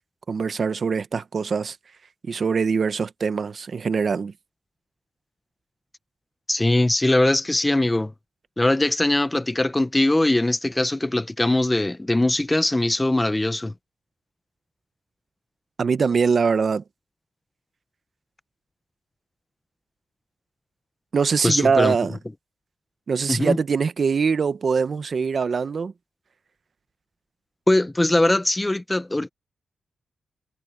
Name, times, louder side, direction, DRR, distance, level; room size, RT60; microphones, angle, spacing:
voice 1, 0.3-1.8 2.3-4.3 15.8-16.8 21.1-22.2 23.1-25.9, right 5 dB, 55° right, 0.8 m, -23 dB
voice 2, 6.5-8.1 8.6-13.7 21.4-22.0 23.3-23.6 27.7-29.3, left 1 dB, 15° left, 0.8 m, -21 dB
wide cardioid pair, 105°, 0 cm